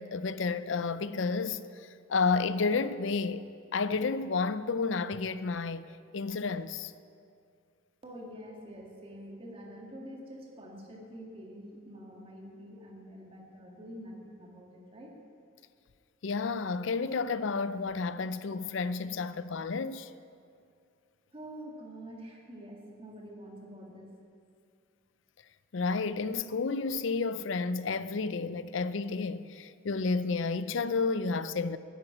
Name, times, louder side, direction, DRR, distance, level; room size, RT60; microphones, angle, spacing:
voice 1, 0.0-3.4 3.7-5.9 6.1-6.9 16.2-20.1 25.7-31.8, left 4 dB, 70° left, 0.5 m, -31 dB
voice 2, 8.0-15.2 21.3-24.2, equal, 30° right, 1.9 m, -46 dB
10.0 x 10.0 x 8.6 m
head